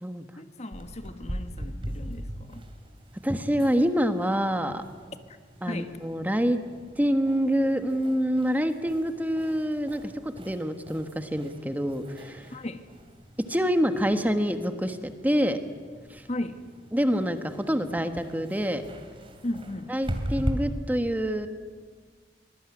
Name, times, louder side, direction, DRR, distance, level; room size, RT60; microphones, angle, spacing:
voice 1, 0.4-2.6 5.3-5.4 5.7-6.0 12.5-12.9 16.3-16.6 19.4-19.9, left 1 dB, 40° left, 9 dB, 1.4 m, -36 dB
sound 1, 0.7-20.5, equal, 30° right, 3.1 m, -41 dB
voice 2, 3.2-4.8 5.6-6.6 7.0-12.5 13.5-15.6 16.1-16.2 16.9-18.8 19.9-21.5, equal, 10° right, 8 dB, 1.4 m, -26 dB
24.5 x 21.0 x 9.9 m, 1.5 s
head